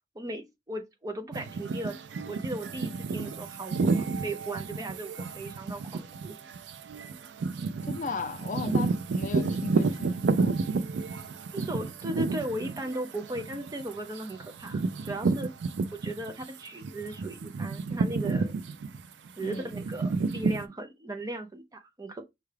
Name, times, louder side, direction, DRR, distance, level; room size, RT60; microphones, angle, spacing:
voice 1, 0.2-6.4 11.5-15.5 15.9-18.6 19.4-22.2, right 1 dB, 20° right, 0.4 m, -37 dB
sound 1, 1.3-16.5 16.8-20.6, right 4 dB, 80° right, 0.4 m, -31 dB
voice 2, 7.8-10.6 19.4-19.7, left 3 dB, 45° left, 0.5 m, -36 dB
5.5 x 2.4 x 3.2 m
head